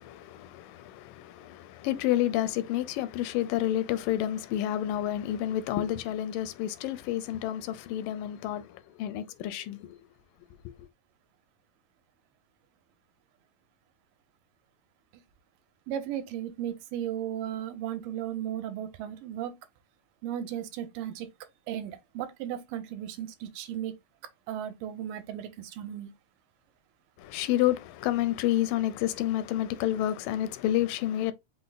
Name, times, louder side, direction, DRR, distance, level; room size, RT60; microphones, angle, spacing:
voice 1, 0.0-10.0 10.7-10.8 27.2-31.3, left 13 dB, 85° left, 2.2 m, -29 dB
voice 2, 15.9-19.6 20.2-21.3 21.7-23.9 24.5-26.1, right 10 dB, 80° right, 2.3 m, -35 dB
5.6 x 2.0 x 3.9 m
omnidirectional pair, 3.8 m